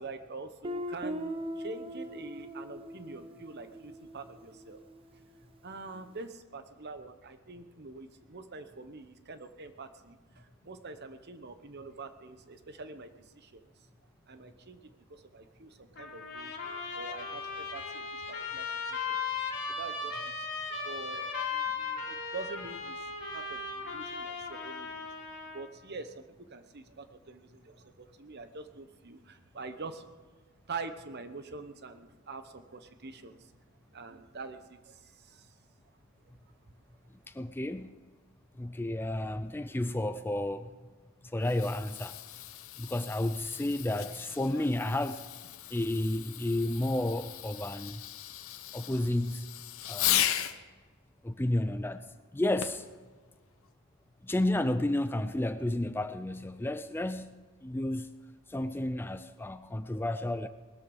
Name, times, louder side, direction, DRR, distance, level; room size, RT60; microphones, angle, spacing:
voice 1, 0.0-4.9 5.6-13.7 14.3-19.2 19.5-25.2 25.5-30.4 30.7-33.5 33.9-35.6, right 3 dB, 50° right, 1.0 m, -45 dB
Guitar, 0.6-5.3, equal, 25° right, 0.9 m, -40 dB
Trumpet, 16.0-25.6, left 5 dB, 50° left, 3.3 m, -37 dB
voice 2, 37.3-38.0 38.6-40.7 41.2-42.2 42.8-45.2 45.7-48.0 48.7-49.5 49.9-50.3 51.2-52.1 52.3-52.9 54.2-58.1 58.5-60.5, left 1 dB, 10° left, 0.4 m, -31 dB
Fireworks, 41.3-50.6 52.6-52.9 53.6-53.7, left 12 dB, 70° left, 0.9 m, -36 dB
19.5 x 13.0 x 5.5 m
head